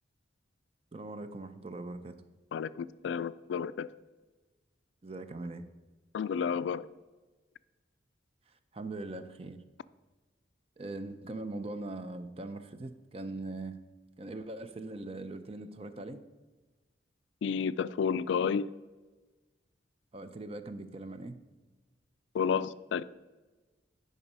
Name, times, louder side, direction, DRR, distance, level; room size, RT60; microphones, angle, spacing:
voice 1, 0.9-2.2 5.0-5.6 8.7-9.6 10.8-13.8 14.2-16.2 20.1-21.4, right 2 dB, 30° right, 0.5 m, -41 dB
voice 2, 2.5-3.9 6.1-6.8 17.4-18.7 22.3-23.0, left 6 dB, 80° left, 0.3 m, -31 dB
9.9 x 5.4 x 5.3 m
head